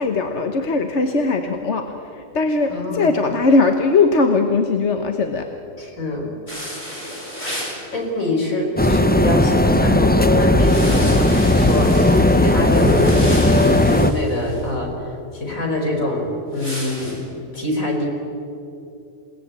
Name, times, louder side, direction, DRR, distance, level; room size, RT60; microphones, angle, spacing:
voice 1, 0.0-1.9 2.1-5.5, left 3 dB, 55° left, 5 dB, 1.4 m, -19 dB
voice 2, 2.7-3.1 5.8-6.3 7.9-18.1, left 1 dB, 70° left, 1 dB, 5.1 m, -24 dB
sound 1, 6.5-7.8 10.5-14.6 16.5-17.1, equal, 30° left, 8.2 m, -33 dB
sound 2, 8.8-14.1, left 1 dB, 10° left, 0.5 m, -16 dB
28.5 x 18.5 x 8.3 m, 2.7 s
omnidirectional pair, 1.5 m